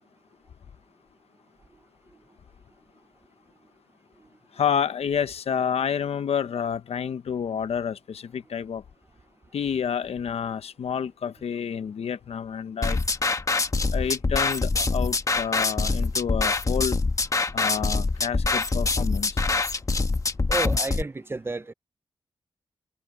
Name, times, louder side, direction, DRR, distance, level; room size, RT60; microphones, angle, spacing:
voice 1, 4.6-8.8 9.5-13.0 13.9-17.0 17.5-19.3, left 7 dB, 75° left, 1.0 m, -29 dB
sound 1, 12.8-21.0, left 3 dB, 30° left, 1.2 m, -24 dB
voice 2, 20.5-21.7, right 2 dB, 20° right, 0.6 m, -31 dB
wide cardioid pair, 105°, 10 cm